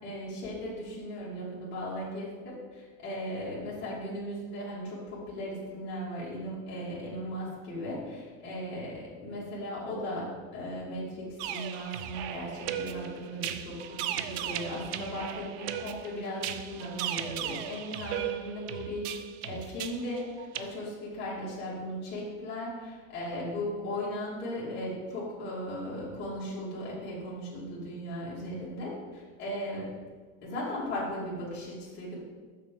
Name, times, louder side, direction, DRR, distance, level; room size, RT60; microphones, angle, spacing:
voice 1, 0.0-2.6 3.0-10.3 10.5-19.0 19.4-29.9 30.4-32.1, equal, 30° left, -8 dB, 2.8 m, -37 dB
sound 1, 11.4-20.6, right 10 dB, 60° right, 0.6 m, -37 dB
6.7 x 6.6 x 6.6 m, 1.5 s
cardioid pair, 175°, 37 cm